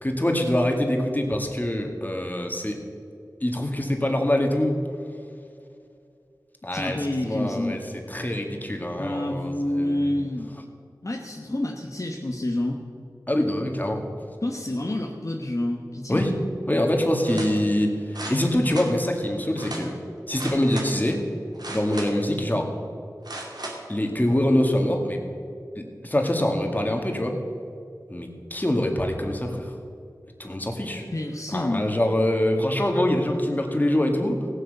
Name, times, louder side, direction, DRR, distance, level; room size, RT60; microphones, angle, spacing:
voice 1, 0.0-2.8 3.4-4.8 6.6-7.8 8.1-10.1 13.3-14.1 16.1-16.3 16.7-19.9 20.3-21.2 21.7-22.7 23.9-25.2 25.8-27.4 28.1-29.7 30.4-31.0 31.5-34.5, left 1 dB, 25° left, 2 dB, 2.0 m, -24 dB
voice 2, 6.7-7.8 9.0-10.5 11.0-12.8 14.4-16.3 31.1-31.9, left 1 dB, 50° left, 0 dB, 1.1 m, -28 dB
sound 1, 17.2-17.5 18.1-18.9 19.6-19.9 20.4-20.9 21.5-22.3 23.2-23.8 24.3-24.4, right 2 dB, 70° right, 2.4 m, -36 dB
17.0 x 7.9 x 6.7 m, 2.5 s
wide cardioid pair, 45°, 7 cm